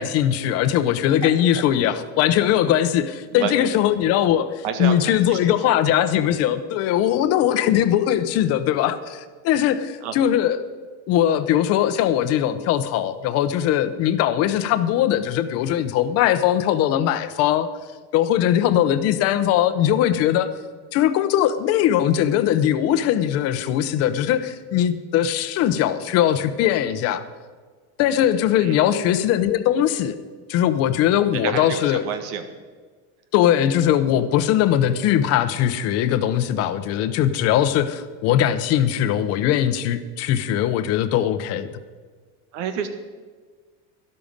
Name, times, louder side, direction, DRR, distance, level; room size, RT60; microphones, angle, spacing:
voice 1, 0.0-10.6 11.1-17.7 18.1-20.5 20.9-27.2 28.0-30.2 30.5-32.0 33.3-41.7, left 11 dB, 45° left, 12 dB, 0.7 m, -20 dB
voice 2, 3.3-3.7 4.6-5.7 10.0-10.1 28.6-28.9 31.3-32.4 42.5-42.9, right 7 dB, 90° right, 8 dB, 1.8 m, -29 dB
12.5 x 12.5 x 5.2 m, 1.5 s
cardioid pair, 170°, 35 cm